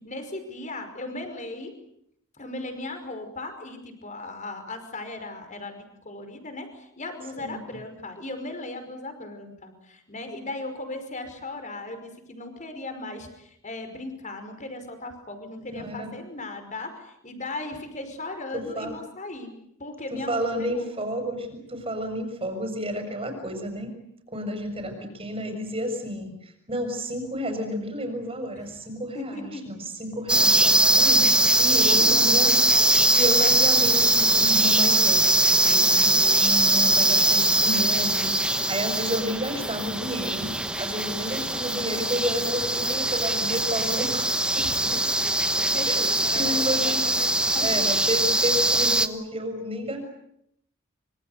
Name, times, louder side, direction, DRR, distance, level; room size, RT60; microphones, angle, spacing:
voice 1, 0.0-1.7 2.4-19.5 19.8-20.9 28.7-28.8 29.1-29.6 31.9-32.3 32.7-33.2 40.4-40.6 44.6-45.2 45.5-47.9, left 2 dB, 35° left, 7 dB, 5.4 m, -37 dB
voice 2, 15.7-16.1 18.5-18.9 20.1-23.9 24.3-32.6 33.1-44.6 45.8-47.0 47.6-50.0, equal, 25° right, 6 dB, 6.3 m, -31 dB
sound 1, 30.3-49.1, right 1 dB, 5° right, 1.2 m, -21 dB
25.5 x 25.0 x 8.1 m, 0.75 s
head